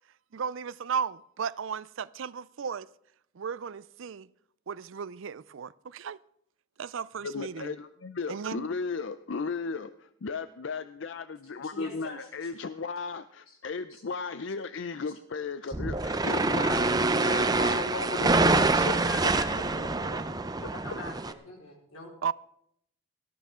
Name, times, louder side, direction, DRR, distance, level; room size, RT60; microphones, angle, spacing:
voice 1, 0.3-2.9 3.4-4.3 4.7-6.2 6.8-7.7 8.3-8.7 22.2-22.3, right 6 dB, 70° right, 0.4 m, -35 dB
voice 2, 7.2-19.5, left 4 dB, 60° left, 0.5 m, -35 dB
voice 3, 11.5-12.5 13.9-14.0 17.2-17.3 17.6-17.7 19.5-20.3 20.7-22.1, left 1 dB, 90° left, 4.7 m, -45 dB
sound 1, 15.7-21.3, right 3 dB, 20° right, 0.6 m, -26 dB
18.5 x 14.0 x 3.7 m
head